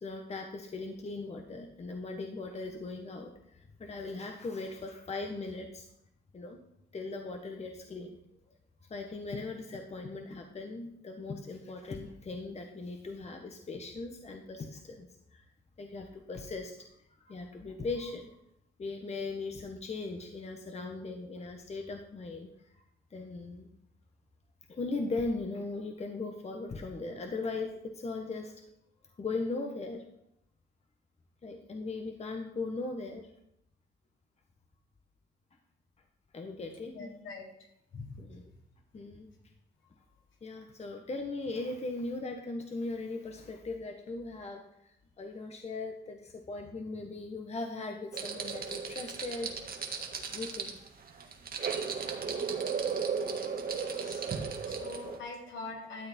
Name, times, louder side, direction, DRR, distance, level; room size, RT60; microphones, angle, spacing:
voice 1, 0.0-5.9 6.3-6.6 6.9-8.2 8.9-15.1 15.3-15.4 15.8-16.7 17.2-18.3 18.8-22.5 23.1-23.7 24.7-28.5 29.2-30.0 31.4-33.3 36.3-37.1 38.2-38.4 38.9-39.3 40.4-49.5 50.3-50.8, left 3 dB, 35° left, 3 dB, 1.3 m, -39 dB
voice 2, 36.9-38.2 38.5-38.6 54.0-54.4 54.6-56.1, left 3 dB, 70° left, -1 dB, 3.7 m, -44 dB
sound 1, 48.1-55.2, right 5 dB, 50° right, 1.7 m, -35 dB
12.5 x 7.9 x 4.4 m, 0.78 s
cardioid pair, 90°, 20 cm